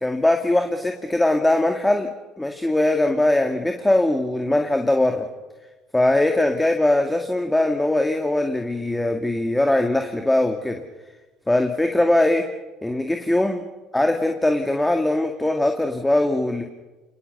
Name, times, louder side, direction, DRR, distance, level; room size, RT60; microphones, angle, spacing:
voice 1, 0.0-2.1 2.4-5.3 5.9-10.8 11.5-12.5 12.8-13.6 13.9-16.6, left 1 dB, 10° left, 5 dB, 2.4 m, -21 dB
29.5 x 19.5 x 6.8 m, 1.2 s
hypercardioid pair, 60°, 0 cm